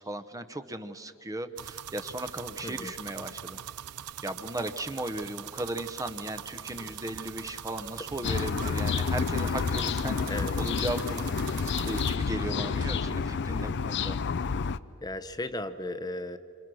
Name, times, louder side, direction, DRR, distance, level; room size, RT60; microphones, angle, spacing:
voice 1, 0.0-3.6 4.2-11.3 11.6-14.2, right 1 dB, 15° right, 9 dB, 0.8 m, -36 dB
sound 1, 1.6-12.2, right 10 dB, 80° right, 0.6 m, -42 dB
sound 2, 6.7-13.8, right 2 dB, 40° right, 1.6 m, -51 dB
sound 3, 8.2-14.8, left 5 dB, 55° left, 0.5 m, -29 dB
voice 2, 15.0-16.4, left 1 dB, 20° left, 10 dB, 0.9 m, -35 dB
29.0 x 26.5 x 6.3 m, 2.6 s
head